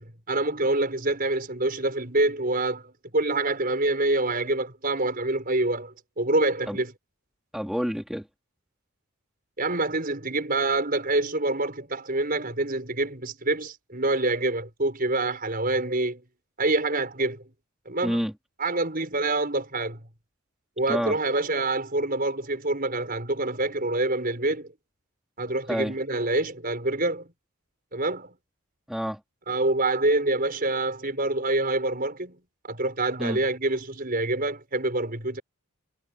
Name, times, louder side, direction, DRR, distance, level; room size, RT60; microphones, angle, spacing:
voice 1, 0.0-6.9 9.6-16.2 16.6-17.4 17.9-18.3 18.6-20.0 20.8-24.7 25.4-27.3 27.9-28.3 29.5-32.4 32.6-35.4, right 2 dB, 40° right, 5.9 m, -26 dB
voice 2, 7.5-8.3 18.0-18.3 20.9-21.2 25.7-25.9 28.9-29.2 33.2-33.4, equal, ahead, 4.0 m, -28 dB
head